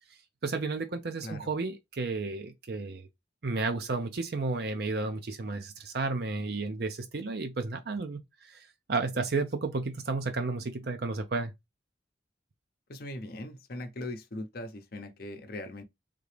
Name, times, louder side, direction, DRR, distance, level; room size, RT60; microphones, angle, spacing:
voice 1, 0.4-3.1 3.4-8.6 8.9-11.5, right 3 dB, 60° right, 0.6 m, -32 dB
voice 2, 12.9-15.8, left 1 dB, 55° left, 0.7 m, -40 dB
3.7 x 2.8 x 3.2 m
head